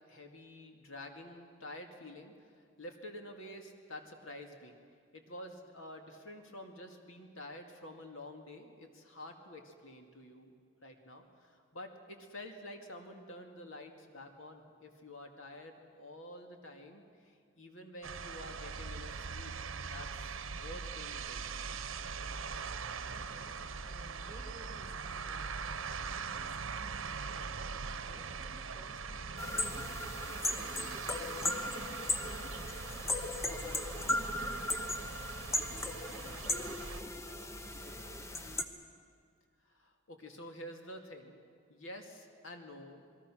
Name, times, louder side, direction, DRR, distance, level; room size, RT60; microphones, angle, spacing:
voice 1, 0.1-2.3 2.8-4.8 5.1-10.5 10.8-19.5 19.8-21.8 39.6-41.4 41.7-43.0, left 1 dB, 80° left, 4 dB, 2.3 m, -49 dB
sound 1, 18.0-37.0, right 5 dB, 75° right, 0.9 m, -42 dB
voice 2, 23.0-25.4 26.1-27.5 28.0-30.2 30.5-31.7 32.2-35.6 36.0-38.7, right 1 dB, 15° right, 1 dB, 3.3 m, -57 dB
sound 2, 29.4-38.6, left 2 dB, 15° left, 1.0 m, -37 dB
28.0 x 21.0 x 6.2 m, 2.2 s
head